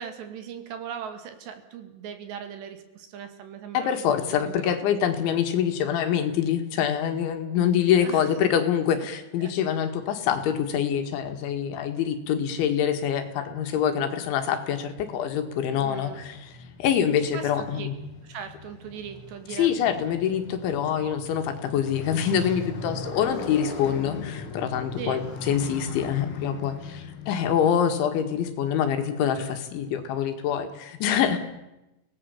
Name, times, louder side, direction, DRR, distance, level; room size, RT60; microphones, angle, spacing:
voice 1, 0.0-4.8 8.0-8.4 9.4-9.5 15.7-16.2 17.3-17.9 18.2-19.7 21.0-21.1 25.0-25.2 27.5-27.9, right 8 dB, 70° right, 7 dB, 4.1 m, -39 dB
voice 2, 3.7-18.0 19.5-31.4, left 8 dB, 80° left, 7 dB, 4.2 m, -25 dB
Motorcycle, 15.0-27.3, left 4 dB, 55° left, 1.5 m, -39 dB
29.5 x 18.5 x 7.2 m, 0.95 s
omnidirectional pair, 5.4 m